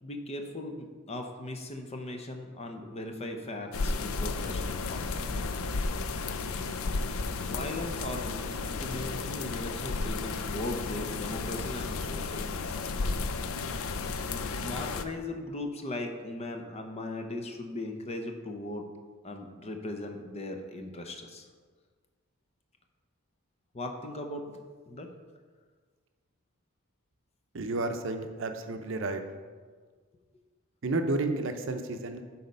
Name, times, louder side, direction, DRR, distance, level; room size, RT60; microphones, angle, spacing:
voice 1, 0.0-5.4 7.4-12.8 14.3-18.8 19.2-21.5 23.7-24.6 24.9-25.1, left 1 dB, 30° left, 4 dB, 0.7 m, -38 dB
sound 1, 3.7-15.0, left 3 dB, 75° left, 0.5 m, -33 dB
voice 2, 27.5-29.2 30.8-32.2, right 2 dB, 60° right, 6 dB, 0.6 m, -31 dB
8.1 x 4.2 x 5.3 m, 1.5 s
head